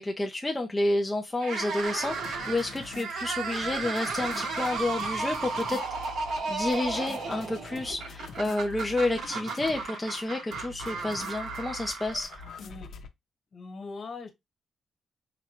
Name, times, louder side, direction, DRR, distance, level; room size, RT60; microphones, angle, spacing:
voice 1, 0.0-5.8 6.5-12.3, left 2 dB, 15° left, 0.4 m, -30 dB
sound 1, 1.4-12.7, right 4 dB, 85° right, 1.3 m, -34 dB
sound 2, 2.0-13.1, left 5 dB, 70° left, 0.8 m, -45 dB
voice 2, 12.6-12.9 13.5-14.3, left 4 dB, 45° left, 1.3 m, -41 dB
4.9 x 2.2 x 3.0 m
cardioid pair, 145°, 0 cm